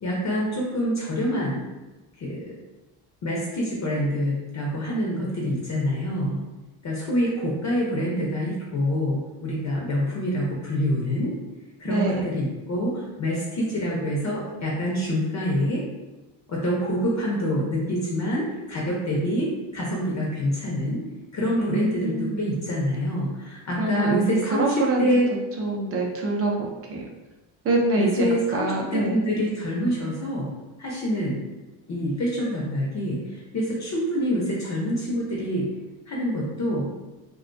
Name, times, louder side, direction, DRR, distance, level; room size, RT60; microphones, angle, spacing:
voice 1, 0.0-1.7 2.2-2.5 3.2-6.4 6.8-11.3 11.8-15.8 16.5-21.0 21.3-25.3 28.0-30.5 30.8-31.4 31.9-35.7 36.1-36.9, equal, 35° left, -4 dB, 0.6 m, -26 dB
voice 2, 11.8-12.2 21.6-22.5 23.8-25.1 25.6-27.1 27.6-29.2, right 2 dB, 30° right, 0 dB, 0.5 m, -25 dB
2.3 x 2.2 x 2.5 m, 1.1 s
cardioid pair, 95°, 49 cm